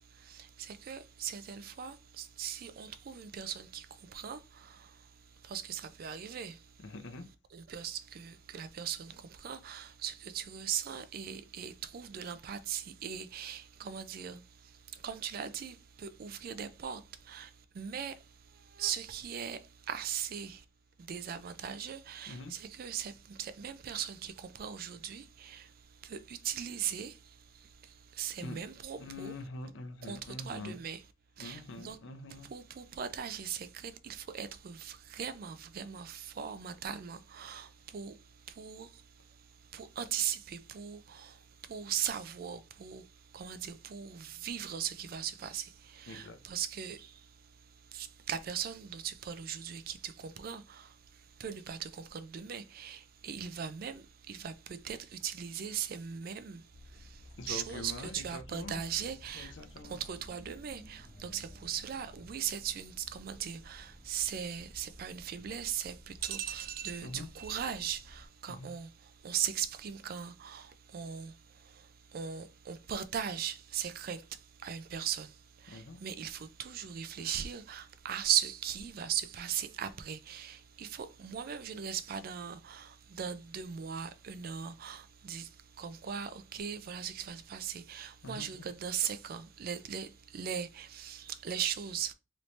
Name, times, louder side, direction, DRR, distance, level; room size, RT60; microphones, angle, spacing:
voice 1, 0.1-5.0 5.4-6.6 7.5-18.2 18.5-20.6 21.0-25.7 26.0-29.4 30.0-31.1 31.4-32.0 32.4-38.2 38.5-39.0 39.7-43.1 43.3-47.3 47.9-50.9 51.4-56.6 56.9-59.5 59.8-92.1, right 8 dB, 50° right, 0.3 m, -39 dB
voice 2, 6.8-7.3 22.3-22.5 28.4-28.6 28.9-30.8 31.4-32.5 46.1-46.4 57.4-58.8 59.3-60.0 67.0-67.3 68.5-68.7 75.7-76.0 88.2-88.7, left 2 dB, 70° left, 0.6 m, -44 dB
sound 1, 56.7-68.3, left 1 dB, 40° left, 1.4 m, -54 dB
3.1 x 2.7 x 3.1 m
head